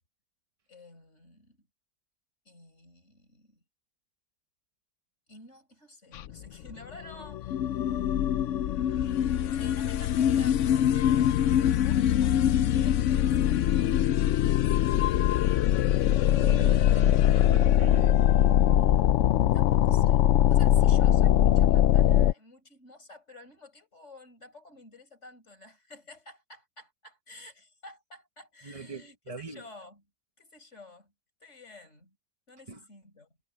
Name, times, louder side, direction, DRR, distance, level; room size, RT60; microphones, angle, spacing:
voice 1, 0.7-1.7 2.5-3.6 5.3-7.8 9.1-13.7 19.5-20.2 20.5-30.1 30.4-31.1 31.4-32.2 32.5-33.3, left 2 dB, 40° left, 5.7 m, -51 dB
sound 1, 6.1-6.3 6.7-6.8 7.0-22.3, left 11 dB, 80° left, 0.6 m, -22 dB
voice 2, 16.4-18.3 20.8-20.9 28.6-29.6 32.7-32.8, right 4 dB, 25° right, 0.9 m, -42 dB
omnidirectional pair, 1.8 m